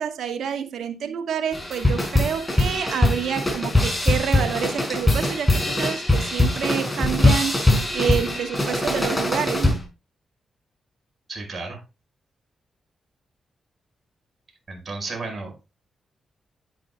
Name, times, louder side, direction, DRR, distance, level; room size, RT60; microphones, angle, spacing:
voice 1, 0.0-7.7 7.9-9.8, right 8 dB, 75° right, 1.3 m, -28 dB
sound 1, 1.5-9.8, left 2 dB, 15° left, 5.5 m, -22 dB
voice 2, 11.3-11.8 14.7-15.7, right 3 dB, 45° right, 5.1 m, -33 dB
10.5 x 9.3 x 2.2 m
supercardioid pair, 50°, 0 cm